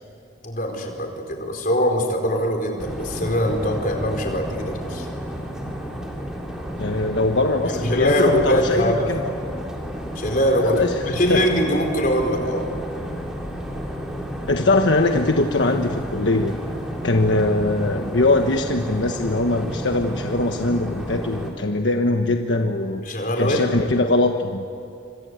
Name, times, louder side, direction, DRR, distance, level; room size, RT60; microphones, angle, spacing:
voice 1, 0.4-5.1 7.7-9.1 10.1-12.7 23.0-23.6, equal, 45° left, 2 dB, 4.5 m, -22 dB
sound 1, 2.8-21.5, equal, 5° right, 3.4 m, -32 dB
voice 2, 6.8-9.2 10.6-11.4 14.5-16.6 17.0-23.0 23.4-24.6, left 2 dB, 75° left, 4 dB, 1.3 m, -21 dB
27.5 x 25.5 x 8.2 m, 2.6 s
head